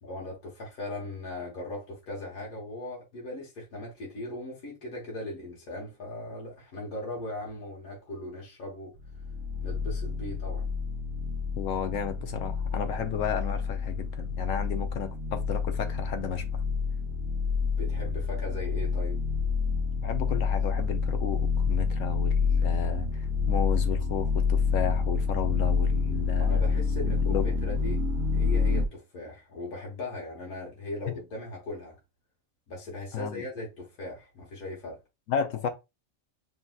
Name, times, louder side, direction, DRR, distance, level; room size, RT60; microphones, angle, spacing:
voice 1, 0.0-9.0 9.6-10.7 17.8-19.2 26.4-28.0 28.3-32.0 32.7-35.0, left 1 dB, 90° left, 1.7 m, -38 dB
sound 1, 9.0-28.9, left 5 dB, 85° right, 1.1 m, -28 dB
voice 2, 11.6-16.6 20.0-26.6 27.0-27.5 31.1-31.2 33.1-33.4 35.3-35.7, left 8 dB, 70° left, 0.9 m, -33 dB
5.8 x 2.8 x 2.3 m
omnidirectional pair, 1.5 m